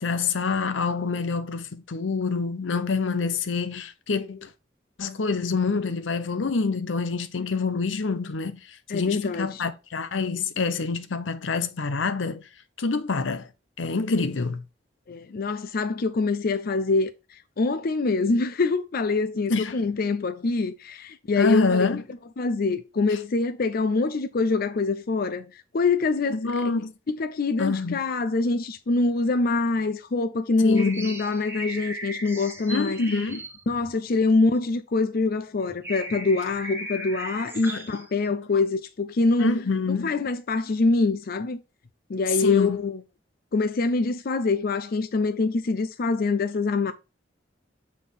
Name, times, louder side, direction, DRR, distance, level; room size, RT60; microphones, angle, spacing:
voice 1, 0.0-4.5 5.0-12.5 12.8-13.5 13.8-14.6 19.5-19.8 21.4-22.0 26.3-26.9 27.6-28.0 30.6-31.2 32.7-33.4 37.6-37.9 38.3-38.4 39.4-40.2 42.4-42.8, left 4 dB, 85° left, 0.7 m, -26 dB
voice 2, 8.9-9.7 15.1-21.9 22.4-26.5 27.1-33.0 33.7-39.5 40.0-41.6 42.1-43.0 43.5-46.9, left 3 dB, 55° left, 0.5 m, -25 dB
sound 1, 30.8-34.7 35.2-35.3 35.6-38.1, right 1 dB, 15° right, 1.1 m, -37 dB
7.4 x 4.2 x 3.6 m
head